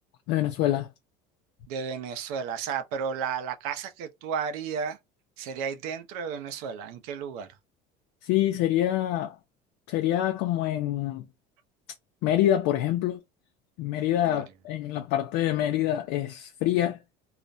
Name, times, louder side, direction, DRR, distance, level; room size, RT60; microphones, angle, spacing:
voice 1, 0.3-0.9 8.2-9.4 9.9-11.2 12.2-13.2 13.8-17.0, left 12 dB, 80° left, 0.5 m, -26 dB
voice 2, 1.7-5.0 5.4-7.5 14.2-14.4, right 6 dB, 90° right, 0.6 m, -33 dB
2.4 x 2.1 x 2.6 m
cardioid pair, 125°, 19 cm